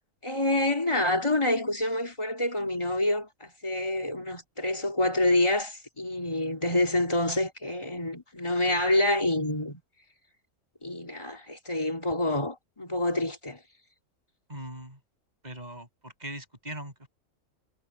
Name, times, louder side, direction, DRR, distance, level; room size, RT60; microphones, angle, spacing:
voice 1, 0.2-9.8 10.8-13.6, left 1 dB, 20° left, 3.7 m, -27 dB
voice 2, 14.5-15.0 15.4-17.1, right 1 dB, 30° right, 7.7 m, -40 dB
omnidirectional pair, 1.3 m